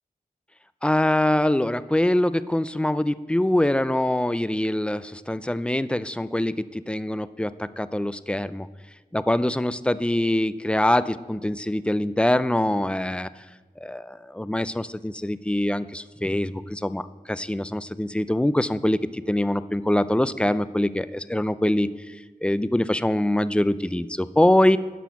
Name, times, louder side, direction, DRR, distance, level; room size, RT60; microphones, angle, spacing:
voice 1, 0.8-8.7 9.1-13.3 13.8-22.2 22.4-24.8, left 1 dB, 5° left, 15 dB, 0.3 m, -24 dB
10.5 x 6.1 x 5.7 m, 1.3 s
wide cardioid pair, 50°, 16 cm